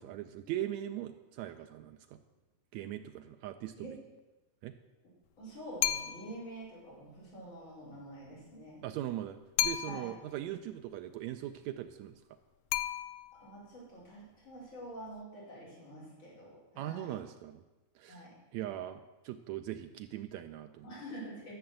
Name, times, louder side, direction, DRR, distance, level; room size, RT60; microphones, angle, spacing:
voice 1, 0.0-2.2 2.7-4.0 4.6-4.7 8.8-12.2 16.8-17.6 17.9-18.2 18.5-20.9, right 12 dB, 80° right, 8 dB, 1.7 m, -40 dB
voice 2, 5.4-8.9 9.9-10.1 13.3-17.2 18.1-18.7 20.8-21.5, right 1 dB, 35° left, -7 dB, 5.4 m, -47 dB
sound 1, 5.8-6.4 9.6-10.3 12.7-13.5, left 11 dB, 80° left, 1.6 m, -33 dB
12.5 x 6.8 x 7.7 m, 1.1 s
omnidirectional pair, 3.7 m